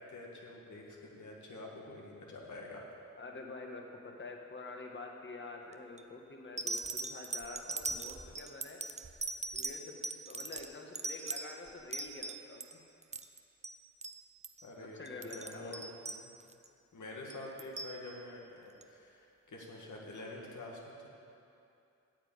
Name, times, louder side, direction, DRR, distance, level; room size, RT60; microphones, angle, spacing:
voice 1, 0.1-2.9 14.6-15.0 15.3-15.9 16.2-16.3 16.9-21.1, left 2 dB, 70° left, -2 dB, 1.9 m, -47 dB
voice 2, 3.2-8.8 9.5-10.0 10.3-12.8 14.8-15.8, left 3 dB, 35° left, 1 dB, 1.6 m, -47 dB
sound 1, 5.7-6.0 6.6-12.7 13.0-13.4 13.6-13.8 14.0-14.2 14.4-14.6 15.1-16.7 17.3-17.9 18.8-18.9, right 3 dB, 20° right, 0.6 m, -40 dB
8.9 x 7.4 x 8.6 m, 2.7 s
cardioid pair, 85°, 31 cm